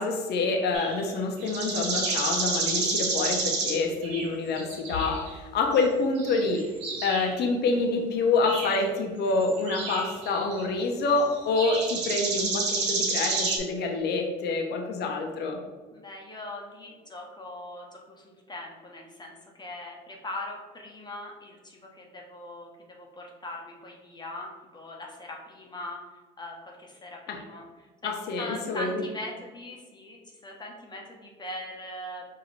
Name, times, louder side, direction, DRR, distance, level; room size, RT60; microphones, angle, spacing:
voice 1, 0.0-6.7 7.0-15.6 27.3-27.4 28.0-29.0, left 3 dB, 60° left, 2 dB, 0.8 m, -27 dB
sound 1, 0.7-1.1 1.4-4.3 4.6-5.3 5.7-5.8 6.2-7.3 8.4-8.8 9.4-10.6 11.2-13.6, right 3 dB, 70° right, 1.2 m, -30 dB
voice 2, 15.9-26.0 26.4-27.7 28.0-28.1 28.4-32.3, left 1 dB, 20° left, 0 dB, 1.0 m, -41 dB
4.9 x 2.8 x 3.2 m, 1.3 s
supercardioid pair, 80°, 19 cm